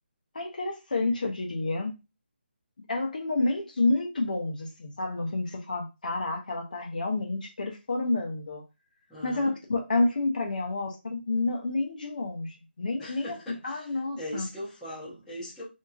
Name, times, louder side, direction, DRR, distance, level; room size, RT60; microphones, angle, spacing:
voice 1, 0.3-1.9 2.9-8.6 9.2-13.3 13.6-14.5, left 2 dB, 45° left, 0.8 m, -29 dB
voice 2, 9.1-9.5 13.0-15.6, left 1 dB, ahead, 0.7 m, -40 dB
2.8 x 2.7 x 2.4 m
hypercardioid pair, 175°, 6 cm